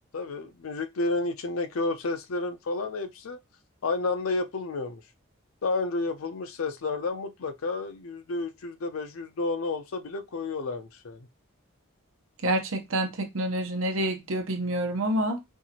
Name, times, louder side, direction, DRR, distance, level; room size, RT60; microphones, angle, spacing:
voice 1, 0.1-3.4 3.8-5.0 5.6-11.3, left 3 dB, 80° left, 0.6 m, -31 dB
voice 2, 12.4-15.4, right 1 dB, 75° right, 0.9 m, -28 dB
4.5 x 2.5 x 2.8 m
head